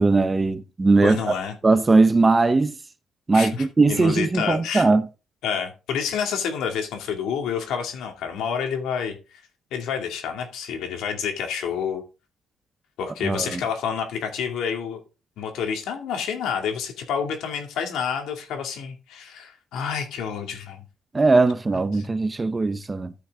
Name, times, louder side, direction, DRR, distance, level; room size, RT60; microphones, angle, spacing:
voice 1, 0.0-1.3 1.6-2.8 3.3-5.1 13.2-13.6 21.1-23.1, right 3 dB, 15° right, 0.6 m, -19 dB
voice 2, 1.0-1.6 3.3-4.9 5.4-9.4 9.7-12.0 13.0-15.0 15.4-20.8 21.9-22.1, left 7 dB, 85° left, 2.3 m, -29 dB
13.5 x 6.0 x 3.6 m
cardioid pair, 170°, 0 cm